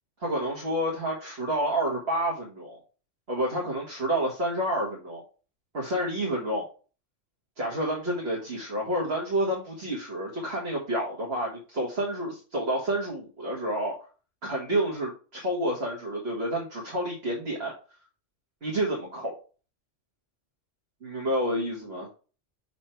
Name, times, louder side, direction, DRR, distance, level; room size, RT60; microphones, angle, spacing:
voice 1, 0.2-2.8 3.3-5.2 5.7-6.7 7.6-14.1 14.4-17.7 18.6-19.3 21.0-22.1, right 1 dB, 55° right, -2 dB, 1.9 m, -29 dB
6.2 x 4.1 x 4.5 m, 0.36 s
omnidirectional pair, 1.3 m